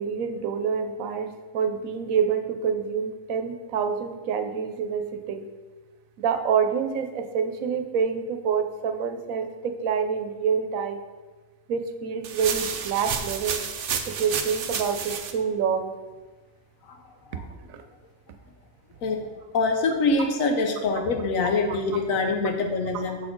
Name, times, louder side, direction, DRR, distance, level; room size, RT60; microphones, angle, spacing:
voice 1, 0.0-5.5 6.2-11.0 11.7-13.6 14.1-15.9 17.7-17.8 21.7-21.8, right 6 dB, 90° right, 6 dB, 1.0 m, -27 dB
sound 1, 12.2-15.3, right 7 dB, 60° right, 0.6 m, -30 dB
voice 2, 19.5-23.2, left 3 dB, 80° left, 4 dB, 1.2 m, -24 dB
6.3 x 4.3 x 4.5 m, 1.3 s
omnidirectional pair, 1.4 m